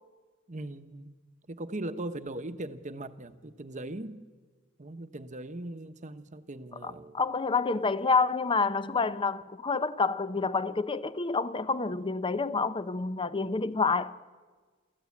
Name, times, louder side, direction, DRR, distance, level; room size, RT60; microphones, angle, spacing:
voice 1, 0.5-1.2 1.5-4.2 4.8-7.2, right 1 dB, 35° right, 1.1 m, -39 dB
voice 2, 6.8-14.2, left 4 dB, 25° left, 0.7 m, -28 dB
29.5 x 14.5 x 8.5 m
head